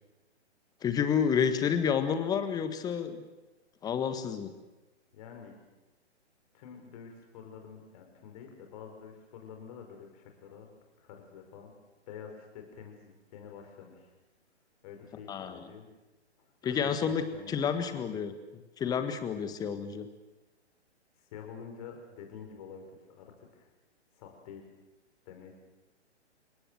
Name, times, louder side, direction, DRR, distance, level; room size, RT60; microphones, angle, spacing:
voice 1, 0.8-3.2 3.8-4.5 15.3-15.7 16.6-18.3 18.8-20.1, left 7 dB, 10° left, 10 dB, 1.4 m, -30 dB
voice 2, 5.1-5.6 6.5-10.7 11.0-11.7 12.1-14.1 14.8-15.9 16.6-18.0 21.3-23.7 24.2-24.7 25.3-25.5, left 7 dB, 35° left, 4 dB, 5.6 m, -48 dB
29.0 x 17.5 x 7.7 m, 1.1 s
figure-of-eight pair, 125°, 35 cm